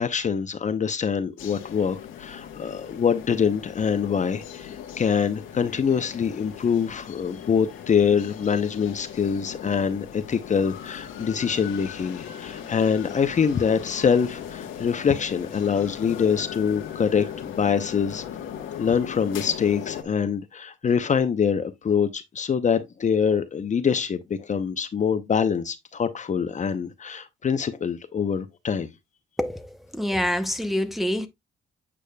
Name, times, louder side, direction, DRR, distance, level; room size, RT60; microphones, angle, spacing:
voice 1, 0.0-18.2 18.8-28.9, left 6 dB, 40° left, 0.7 m, -24 dB
sound 1, 1.4-20.0, left 9 dB, 80° left, 1.3 m, -38 dB
voice 2, 29.4-31.3, equal, ahead, 0.7 m, -26 dB
8.6 x 4.9 x 2.2 m
cardioid pair, 90°, 20 cm